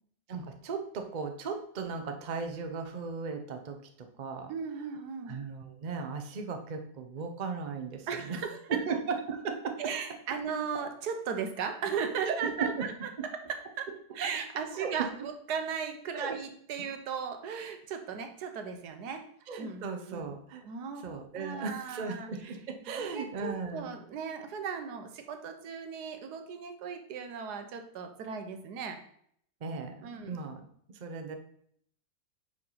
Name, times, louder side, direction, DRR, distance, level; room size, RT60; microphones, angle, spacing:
voice 1, 0.3-4.5 5.2-8.4 8.7-9.9 12.3-12.9 14.7-15.3 16.1-16.3 19.5-20.6 21.0-23.9 29.6-30.7 31.0-31.4, right 5 dB, 45° right, 5 dB, 0.6 m, -36 dB
voice 2, 4.5-5.3 8.1-8.6 9.8-13.1 13.8-13.9 14.1-19.2 19.6-20.3 20.6-21.0 21.4-22.5 22.9-29.0 30.0-30.4, right 6 dB, 85° right, 6 dB, 1.4 m, -37 dB
4.8 x 4.8 x 5.6 m, 0.65 s
omnidirectional pair, 1.7 m